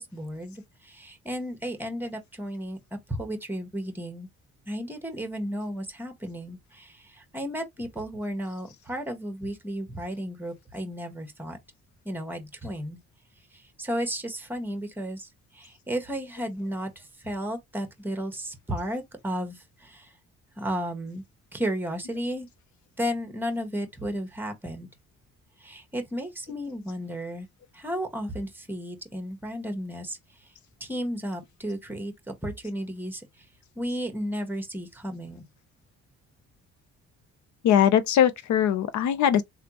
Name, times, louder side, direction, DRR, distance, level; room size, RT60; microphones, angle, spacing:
voice 1, 0.0-2.8 3.1-4.3 4.7-11.6 12.0-13.0 13.5-20.1 20.6-21.2 21.5-22.5 23.0-24.9 25.6-27.5 27.7-30.5 30.8-33.4 33.7-35.4, equal, 5° right, 1.2 m, -33 dB
voice 2, 37.6-39.4, left 9 dB, 70° left, 0.6 m, -21 dB
3.4 x 2.3 x 2.9 m
cardioid pair, 90°, 30 cm